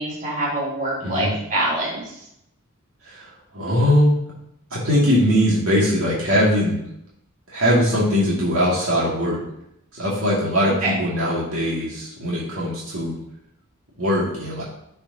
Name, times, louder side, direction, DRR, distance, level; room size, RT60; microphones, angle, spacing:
voice 1, 0.0-2.3 10.6-10.9, right 1 dB, 40° right, -7 dB, 3.1 m, -25 dB
voice 2, 3.0-4.2 4.7-6.8 7.5-9.4 9.9-13.2 14.0-14.6, equal, 70° right, -6 dB, 2.4 m, -21 dB
13.5 x 4.5 x 2.9 m, 0.78 s
head